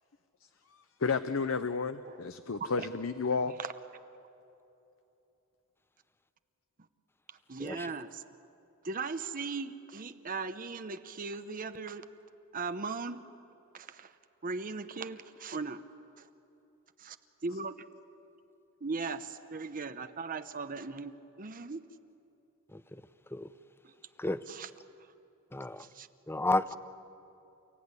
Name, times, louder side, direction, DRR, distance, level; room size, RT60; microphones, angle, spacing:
voice 1, 1.0-3.6, left 4 dB, 70° left, 10 dB, 0.7 m, -31 dB
voice 2, 7.5-8.2 8.8-12.1 12.5-13.2 13.7-14.1 14.4-15.8 16.2-16.3 17.0-17.2 17.4-17.8 18.8-21.8 23.8-23.9 24.5-24.7 25.8-26.1, right 4 dB, 40° right, 10 dB, 0.8 m, -38 dB
voice 3, 25.5-25.8 26.3-26.7, left 2 dB, 10° left, 14 dB, 0.6 m, -31 dB
30.0 x 16.0 x 9.7 m, 2.9 s
head